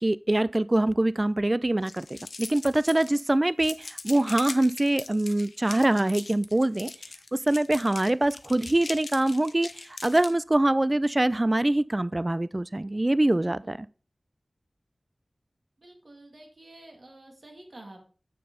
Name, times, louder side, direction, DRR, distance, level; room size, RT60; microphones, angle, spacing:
voice 1, 0.0-6.9 7.3-13.9, right 1 dB, 30° right, 0.3 m, -24 dB
sound 1, 1.8-3.3 3.6-10.3, left 3 dB, 90° left, 0.7 m, -41 dB
voice 2, 13.4-13.8 15.8-18.0, right 1 dB, 60° right, 2.1 m, -48 dB
7.5 x 6.8 x 3.8 m
wide cardioid pair, 70°, 0 cm